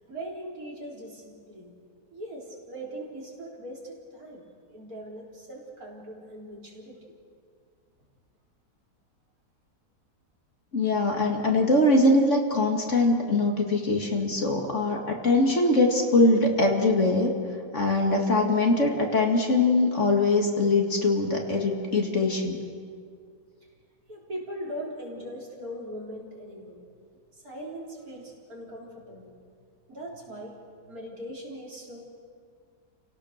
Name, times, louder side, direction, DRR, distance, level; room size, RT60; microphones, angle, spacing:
voice 1, 0.1-1.7 2.1-4.4 4.7-7.0 24.1-26.8 27.4-29.3 29.9-30.5 30.9-32.0, equal, 55° right, -3 dB, 4.4 m, -40 dB
voice 2, 10.7-17.3 17.7-22.6, left 2 dB, 45° left, 1 dB, 2.5 m, -22 dB
29.5 x 17.5 x 6.6 m, 2.2 s
omnidirectional pair, 1.8 m